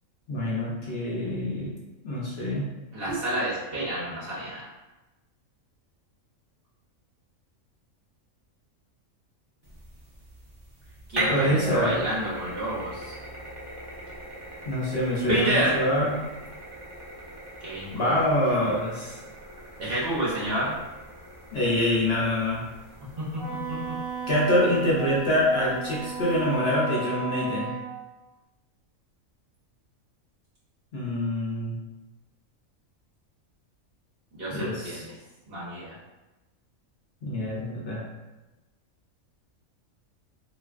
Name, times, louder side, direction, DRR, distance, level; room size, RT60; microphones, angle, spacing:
voice 1, 0.3-1.8 2.0-2.7 11.3-12.0 14.6-16.1 17.9-19.2 21.5-22.6 24.3-27.7 30.9-31.8 34.5-35.1 37.2-38.0, left 1 dB, 60° left, -5 dB, 0.8 m, -25 dB
voice 2, 2.9-4.6 11.1-13.1 15.3-15.8 17.6-18.1 19.8-20.7 23.2-23.3 34.4-35.1 35.5-35.9, right 1 dB, 55° right, -7 dB, 0.8 m, -29 dB
sound 1, 9.6-26.6, right 1 dB, 25° right, 0.6 m, -40 dB
Wind instrument woodwind instrument, 23.4-27.9, right 5 dB, 25° left, 0.7 m, -34 dB
3.2 x 2.5 x 2.3 m, 1.1 s
omnidirectional pair, 1.4 m